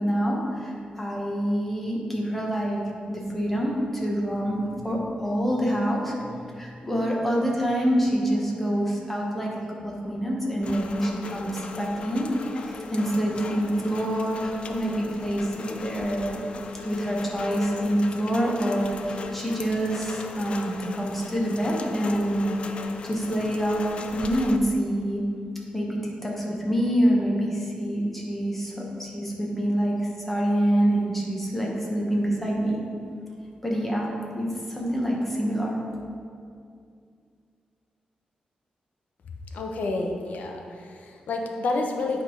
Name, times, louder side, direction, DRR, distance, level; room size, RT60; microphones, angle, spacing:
voice 1, 0.0-2.8 3.1-12.3 12.5-16.4 16.8-22.5 23.0-23.8 24.1-25.2 25.7-28.7 29.0-32.8 33.6-35.8, equal, 5° left, -3 dB, 1.0 m, -26 dB
Rain, 10.6-24.6, left 4 dB, 45° left, 0.4 m, -38 dB
voice 2, 39.5-42.2, left 2 dB, 80° left, 2 dB, 0.8 m, -29 dB
8.6 x 3.6 x 4.9 m, 2.3 s
wide cardioid pair, 180°, 3 cm